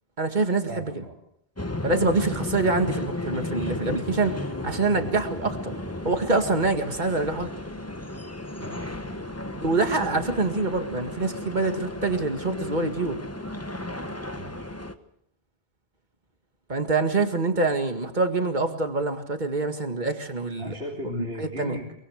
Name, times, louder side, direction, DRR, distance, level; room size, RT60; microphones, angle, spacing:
voice 1, 0.2-1.0 1.8-4.3 4.6-5.7 6.0-7.5 9.6-13.2 16.7-20.7 21.2-21.8, right 3 dB, 45° right, 6 dB, 2.2 m, -25 dB
voice 2, 0.7-1.2 1.8-2.0 8.6-9.2 14.4-14.7 20.6-21.9, equal, 80° right, 0 dB, 3.3 m, -37 dB
sound 1, 1.6-14.9, left 1 dB, 15° left, 1.1 m, -34 dB
24.0 x 21.5 x 6.5 m, 0.74 s
omnidirectional pair, 1.1 m